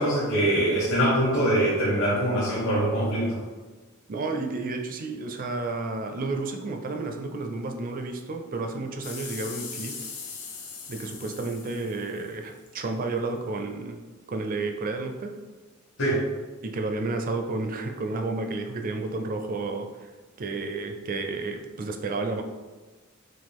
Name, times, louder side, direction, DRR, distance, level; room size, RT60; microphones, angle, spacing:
voice 1, 0.0-3.4 16.0-16.2, right 1 dB, 65° left, -8 dB, 1.3 m, -23 dB
voice 2, 4.1-9.9 10.9-14.0 14.3-15.3 16.6-20.1 20.4-22.4, right 3 dB, 40° right, 5 dB, 0.4 m, -31 dB
sound 1, 9.0-12.7 13.4-13.5, left 5 dB, 90° left, 0.9 m, -40 dB
6.2 x 2.4 x 3.5 m, 1.3 s
head